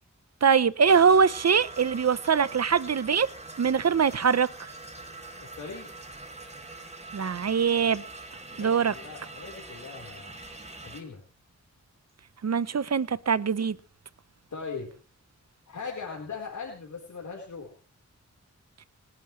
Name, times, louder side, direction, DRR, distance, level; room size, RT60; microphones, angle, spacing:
voice 1, 0.4-3.3 3.6-4.7 7.1-8.0 8.6-8.9 12.4-13.8, right 6 dB, 60° right, 0.8 m, -23 dB
sound 1, 0.8-11.0, right 2 dB, 20° right, 3.8 m, -44 dB
voice 2, 5.4-5.9 8.5-10.4 10.8-11.2 14.5-14.9 15.7-17.7, left 5 dB, 80° left, 4.3 m, -39 dB
29.5 x 11.0 x 3.2 m
wide cardioid pair, 115°, 29 cm